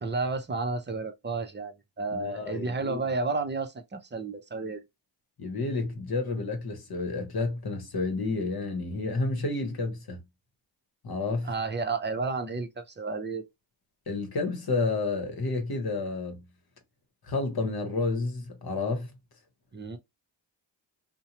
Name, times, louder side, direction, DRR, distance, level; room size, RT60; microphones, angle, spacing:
voice 1, 0.0-4.8 11.4-13.4 19.7-20.0, right 3 dB, 25° right, 0.6 m, -32 dB
voice 2, 2.1-3.0 5.4-10.2 11.0-11.5 14.1-16.4 17.2-19.1, left 3 dB, 50° left, 1.0 m, -30 dB
2.6 x 2.1 x 2.9 m
supercardioid pair, 50°, 48 cm